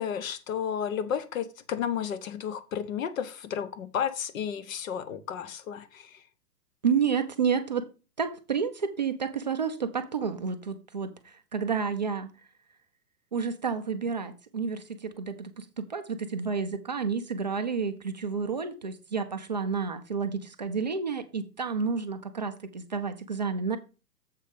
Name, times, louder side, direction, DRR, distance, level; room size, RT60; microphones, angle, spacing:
voice 1, 0.0-6.2, left 8 dB, 55° left, 1.1 m, -32 dB
voice 2, 6.8-7.9 8.2-12.3 13.3-23.8, right 6 dB, 30° right, 0.4 m, -30 dB
7.5 x 4.8 x 5.1 m
hypercardioid pair, 140°, 50 cm